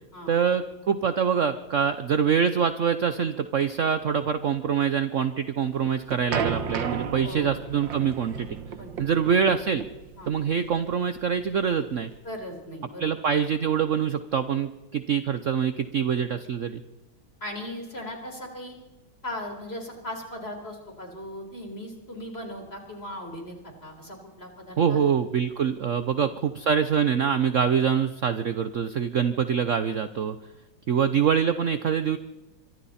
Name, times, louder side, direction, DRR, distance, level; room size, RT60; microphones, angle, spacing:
voice 1, 0.3-8.5 9.0-9.8 10.3-12.1 13.0-16.8 24.8-30.4 30.9-32.2, right 7 dB, 55° right, 11 dB, 1.0 m, -25 dB
sound 1, 5.7-12.5, right 7 dB, 85° right, 2.0 m, -34 dB
voice 2, 12.2-13.1 17.4-18.7 19.2-25.1, left 1 dB, 30° left, 3 dB, 4.5 m, -38 dB
25.5 x 24.0 x 4.3 m, 1.1 s
omnidirectional pair, 2.0 m